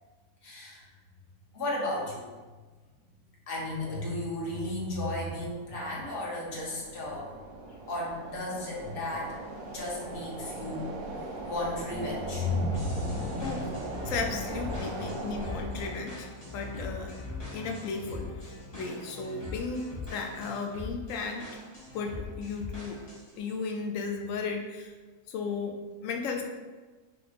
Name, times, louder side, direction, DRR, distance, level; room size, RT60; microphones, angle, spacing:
voice 1, 0.4-0.9 1.5-2.3 3.5-7.3 7.9-9.3 9.7-14.3 14.7-15.1, left 1 dB, 45° left, -5 dB, 1.0 m, -34 dB
sound 1, 4.4-15.9, right 2 dB, 80° right, 1.1 m, -40 dB
sound 2, 12.7-23.4, left 3 dB, 20° left, 1.1 m, -41 dB
voice 2, 14.0-16.3 16.5-17.1 17.5-21.5 21.9-23.0 23.4-24.9 25.3-25.7 26.0-26.4, left 4 dB, 70° left, 3 dB, 0.9 m, -35 dB
5.1 x 2.9 x 2.5 m, 1.3 s
omnidirectional pair, 1.5 m